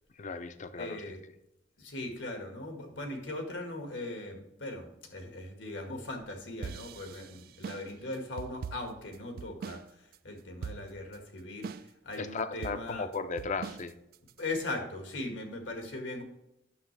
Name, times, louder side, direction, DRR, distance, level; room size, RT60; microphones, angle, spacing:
voice 1, 0.2-1.0 12.2-13.9, left 4 dB, 40° left, 11 dB, 0.5 m, -36 dB
voice 2, 0.7-1.2 1.8-13.1 14.4-16.2, left 2 dB, 90° left, 3 dB, 1.7 m, -39 dB
sound 1, 6.6-9.9 10.1-10.2 10.6-11.2 11.6-12.2 12.6-14.4, right 6 dB, 55° right, 0.3 m, -42 dB
9.4 x 6.7 x 3.3 m, 0.84 s
head